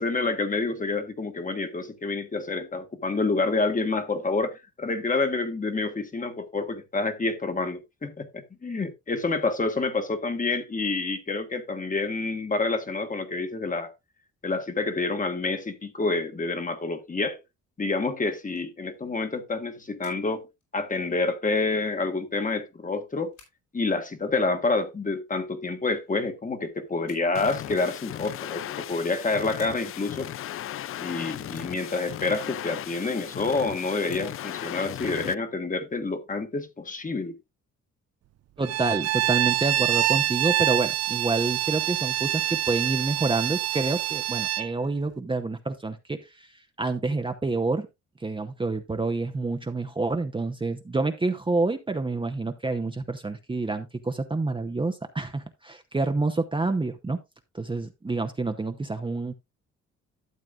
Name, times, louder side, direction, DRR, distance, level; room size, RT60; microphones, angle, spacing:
voice 1, 0.0-13.9 14.4-17.4 17.8-20.5 20.7-23.3 23.7-30.3 31.0-37.4, left 3 dB, 25° left, 1.5 m, -28 dB
sound 1, 18.4-18.8 19.1-20.3 20.6-20.7 21.3-21.4 21.8-22.8 23.1-24.2 25.0-25.1 25.6-26.3 26.9-27.6 28.6-28.7 29.0-29.8 30.6-30.8 31.5-31.7 33.6-34.2 34.5-34.6, left 5 dB, 75° left, 5.2 m, -56 dB
sound 2, 27.3-35.3, left 12 dB, 45° left, 0.4 m, -37 dB
voice 2, 38.6-46.5 46.8-47.9 48.2-57.2 57.5-59.3, right 3 dB, 15° right, 0.9 m, -28 dB
Bowed string instrument, 38.6-44.7, right 13 dB, 55° right, 0.5 m, -26 dB
12.5 x 7.6 x 2.4 m
cardioid pair, 90°, 30 cm